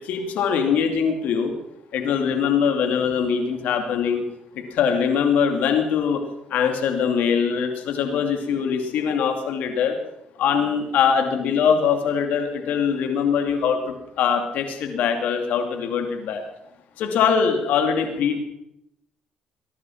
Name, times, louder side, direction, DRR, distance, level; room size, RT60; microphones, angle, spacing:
voice 1, 0.0-1.5 1.9-4.2 4.5-6.2 6.5-10.0 10.4-16.4 17.0-18.4, left 7 dB, 70° left, 5 dB, 2.7 m, -22 dB
20.5 x 11.0 x 5.9 m, 0.81 s
hypercardioid pair, 60°, 3 cm